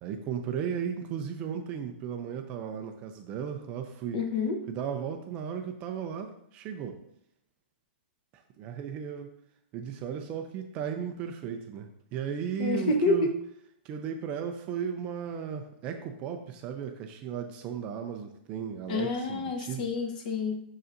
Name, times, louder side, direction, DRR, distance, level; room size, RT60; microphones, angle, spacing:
voice 1, 0.0-4.2 4.7-7.0 8.3-9.3 9.7-13.3 13.8-19.9, right 7 dB, 20° right, 5 dB, 0.4 m, -35 dB
voice 2, 4.1-4.6 12.6-13.3 18.9-20.6, left 2 dB, 40° left, 5 dB, 0.9 m, -28 dB
6.9 x 6.5 x 2.5 m, 0.72 s
hypercardioid pair, 170°, 7 cm